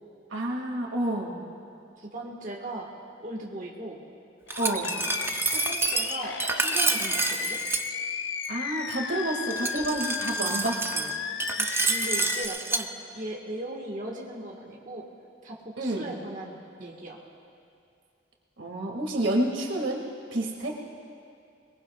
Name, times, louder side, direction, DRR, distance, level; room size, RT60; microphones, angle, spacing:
voice 1, 0.3-1.3 4.6-4.9 8.5-11.1 15.8-16.1 18.6-20.0 20.3-20.7, right 1 dB, 85° right, 0 dB, 2.0 m, -29 dB
voice 2, 2.0-2.9 3.2-4.0 5.5-7.6 10.4-10.6 11.6-15.1 15.4-17.2, right 1 dB, 45° right, -2 dB, 1.5 m, -38 dB
Animal, 4.5-12.5, left 6 dB, 85° left, 0.6 m, -34 dB
Glass, 4.5-7.8 9.5-12.8, right 4 dB, 15° right, 0.4 m, -28 dB
21.5 x 21.5 x 2.3 m, 2.5 s
head